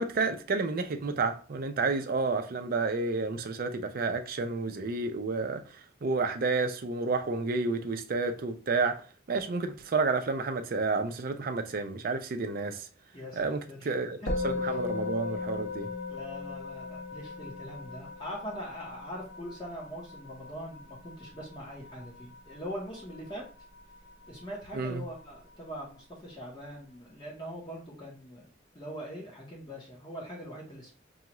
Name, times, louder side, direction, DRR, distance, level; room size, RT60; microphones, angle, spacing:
voice 1, 0.0-12.9 13.4-14.2 14.4-15.9 24.7-25.1, right 3 dB, 50° right, 0.4 m, -30 dB
voice 2, 13.1-14.0 14.2-14.3 14.6-14.8 16.1-23.4 24.3-28.5 28.7-30.9, equal, 25° left, 1.0 m, -42 dB
Musical instrument, 14.3-23.8, left 4 dB, 65° left, 1.0 m, -37 dB
5.5 x 2.3 x 3.0 m
head